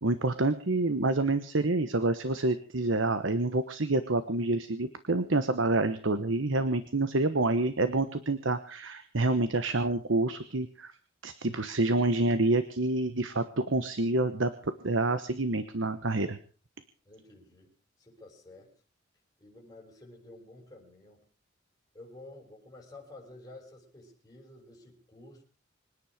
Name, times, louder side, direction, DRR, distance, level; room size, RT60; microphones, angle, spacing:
voice 1, 0.0-10.9 11.2-16.4, right 2 dB, 75° right, 11 dB, 1.2 m, -28 dB
voice 2, 17.0-18.7 19.4-21.2 21.9-25.4, left 2 dB, 20° left, -2 dB, 6.9 m, -51 dB
26.0 x 10.0 x 5.0 m, 0.40 s
head